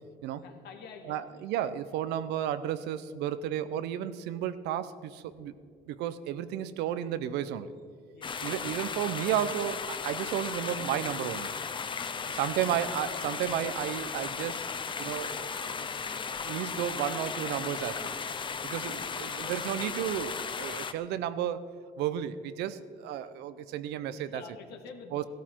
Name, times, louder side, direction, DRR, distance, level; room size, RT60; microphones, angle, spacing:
voice 1, 0.4-1.5 2.4-2.5 8.1-8.8 12.2-12.7 18.5-18.6 23.9-25.3, left 5 dB, 80° left, 4 dB, 1.9 m, -49 dB
voice 2, 1.1-5.5 5.9-7.7 8.4-11.5 12.4-14.7 15.0-15.9 16.4-18.1 18.6-21.7 22.0-24.4 25.1-25.2, right 10 dB, 85° right, 13 dB, 0.7 m, -33 dB
sound 1, 8.2-20.9, left 6 dB, 30° left, 0.7 m, -36 dB
15.0 x 13.0 x 4.5 m, 2.1 s
cardioid pair, 110°, 17 cm